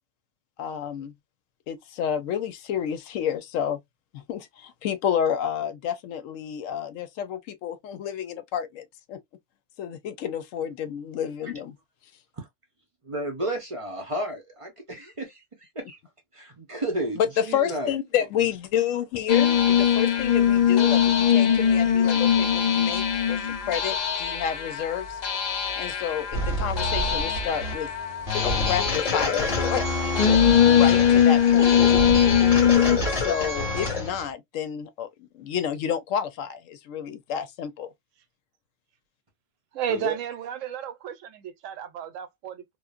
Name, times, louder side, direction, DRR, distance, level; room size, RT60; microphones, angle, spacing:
voice 1, 0.6-1.1 1.7-3.8 4.1-9.2 9.8-11.7 17.2-25.2 25.8-27.9 28.4-31.7 32.7-37.9, left 9 dB, 85° left, 1.0 m, -30 dB
voice 2, 13.0-16.0 16.3-17.9 39.9-40.2, right 1 dB, 40° right, 0.5 m, -32 dB
sound 1, 19.3-33.0, left 8 dB, 65° left, 0.4 m, -21 dB
sound 2, 26.3-34.3, left 2 dB, 40° left, 1.5 m, -28 dB
voice 3, 39.7-42.6, right 9 dB, 80° right, 1.0 m, -33 dB
3.0 x 2.0 x 2.3 m
omnidirectional pair, 1.3 m